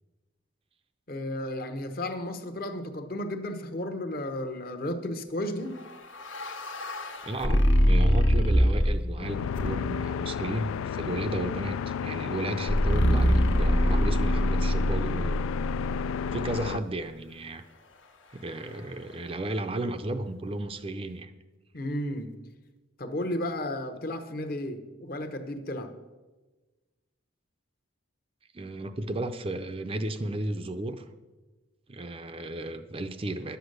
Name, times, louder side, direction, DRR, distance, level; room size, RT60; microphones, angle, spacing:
voice 1, 1.1-5.8 21.7-22.4 23.0-26.0, left 1 dB, 45° left, 1.0 m, -33 dB
sound 1, 5.8-9.1 9.6-10.1 12.7-16.8, equal, 70° left, 1.3 m, -24 dB
voice 2, 7.2-15.4 16.3-17.6 18.3-21.3 28.5-31.0 31.9-33.6, right 2 dB, 25° right, 0.5 m, -34 dB
sound 2, 9.2-16.8, left 7 dB, 85° left, 0.3 m, -32 dB
11.5 x 8.0 x 6.6 m
head